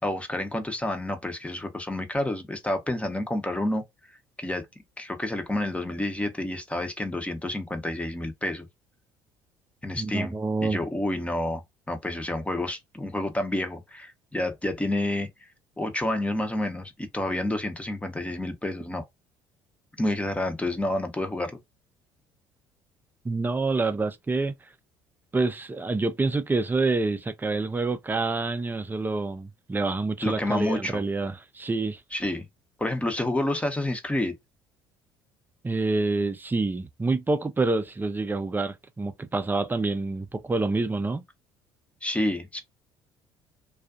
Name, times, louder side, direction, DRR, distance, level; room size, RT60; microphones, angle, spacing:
voice 1, 0.0-3.8 4.4-4.7 5.0-8.7 9.8-10.3 10.6-15.3 15.8-19.0 20.0-21.6 30.2-31.0 32.1-32.5 32.8-34.4 42.0-42.6, left 1 dB, 10° left, 0.8 m, -29 dB
voice 2, 10.0-10.8 23.2-24.5 25.3-32.0 35.6-41.2, right 3 dB, 15° right, 0.6 m, -27 dB
2.4 x 2.4 x 2.5 m
hypercardioid pair, 60°, 11 cm